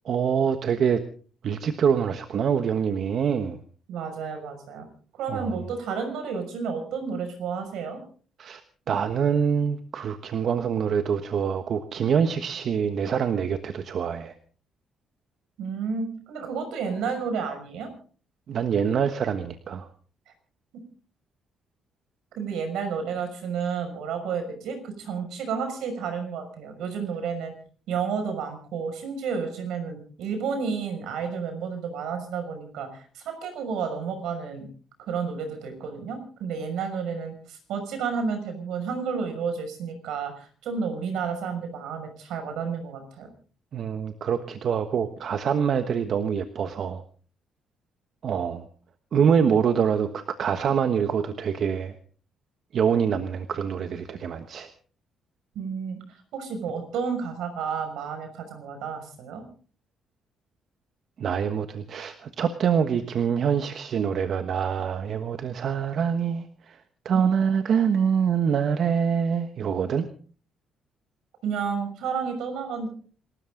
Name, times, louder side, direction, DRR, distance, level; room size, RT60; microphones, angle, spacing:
voice 1, 0.1-1.0 1.4-3.6 5.3-5.5 8.4-8.6 8.9-14.3 18.5-19.9 43.7-47.0 48.2-48.6 49.1-51.9 52.7-54.7 61.2-66.8 67.0-70.0, right 7 dB, 60° right, 8 dB, 1.3 m, -25 dB
voice 2, 3.9-4.9 5.1-8.0 15.6-17.9 22.4-27.5 27.9-34.7 35.0-43.3 55.5-56.0 56.3-59.4 67.1-67.3 71.4-72.9, right 6 dB, 85° right, 7 dB, 6.1 m, -31 dB
28.0 x 13.0 x 3.8 m, 0.42 s
cardioid pair, 100°, 0 cm